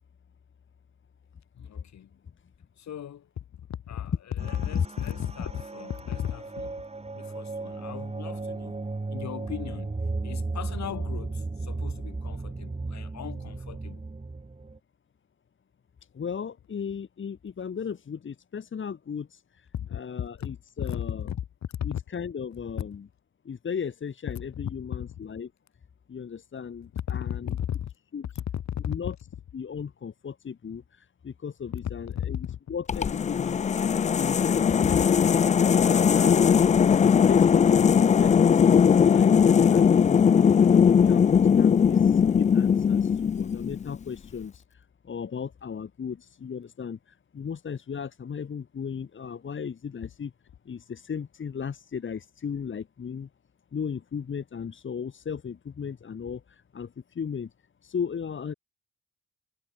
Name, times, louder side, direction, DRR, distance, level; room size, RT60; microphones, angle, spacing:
voice 1, 1.5-2.2 2.8-6.8 7.1-8.8 9.1-14.1 19.7-22.0 24.5-25.3 26.9-27.9 28.3-29.2 31.8-32.6 34.8-35.0, left 10 dB, 65° left, 5.0 m, -35 dB
sound 1, 4.4-14.8, right 3 dB, 20° right, 6.1 m, -35 dB
voice 2, 16.2-19.4 19.9-21.2 21.8-23.0 23.5-25.5 26.1-27.5 28.1-28.2 28.9-29.1 29.5-32.4 32.7-35.3 35.8-40.5 41.0-43.1 43.4-44.6 45.1-47.0 47.3-50.3 50.7-53.3 53.7-56.4 56.7-56.9 57.2-57.5 57.8-58.5, left 6 dB, 40° left, 2.1 m, -36 dB
sound 2, 32.9-44.0, left 7 dB, 25° left, 0.4 m, -20 dB
cardioid pair, 90°, 30 cm